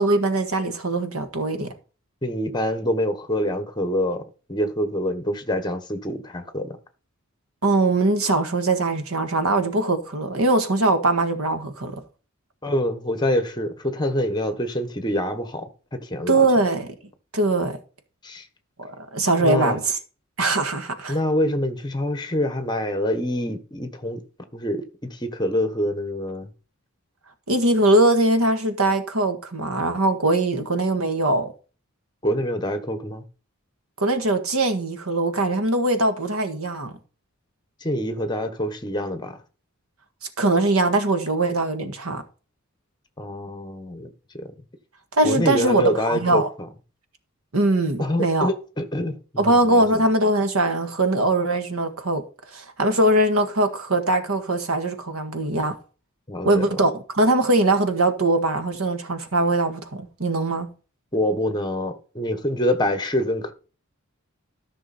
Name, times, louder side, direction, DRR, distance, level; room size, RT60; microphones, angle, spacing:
voice 1, 0.0-1.7 7.6-12.0 16.3-16.9 17.3-17.8 18.8-20.0 20.4-21.2 27.5-31.5 34.0-36.9 40.4-42.2 45.1-46.5 47.5-48.5 49.4-52.2 52.5-55.7 56.4-60.7, right 2 dB, 85° right, 1.7 m, -21 dB
voice 2, 2.2-4.2 4.5-6.8 12.6-16.5 18.2-18.4 19.4-19.8 21.1-24.2 24.5-26.5 32.2-33.2 37.8-39.4 43.2-44.1 45.2-46.4 48.0-50.0 56.3-56.6 61.1-63.5, left 1 dB, 20° left, 1.3 m, -26 dB
13.5 x 6.1 x 4.3 m
head